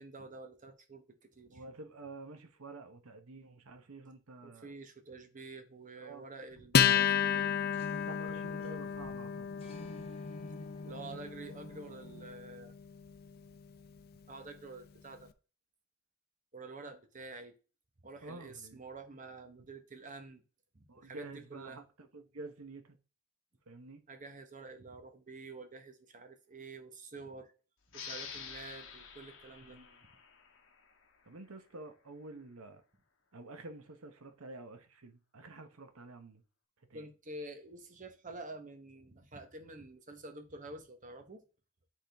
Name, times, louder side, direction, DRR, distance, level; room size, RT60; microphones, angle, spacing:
voice 1, 0.0-1.6 4.4-7.5 8.3-8.4 10.8-12.7 14.3-15.3 16.5-17.6 18.0-20.4 20.7-21.8 24.1-27.5 27.9-29.8 36.9-41.4, right 3 dB, 35° right, 1.1 m, -48 dB
voice 2, 1.5-4.7 6.0-6.3 7.9-9.5 18.2-18.8 20.9-23.0 23.7-24.0 29.7-30.0 31.3-32.8 33.3-36.4 36.9-37.1, right 2 dB, 75° right, 1.0 m, -49 dB
sound 1, 6.4-6.8 7.3-7.4 7.7-12.3, left 1 dB, 25° left, 1.3 m, -50 dB
Acoustic guitar, 6.7-13.6, left 8 dB, 45° left, 0.5 m, -32 dB
sound 2, 27.9-31.2, left 6 dB, 65° left, 1.2 m, -48 dB
10.0 x 3.7 x 3.4 m
head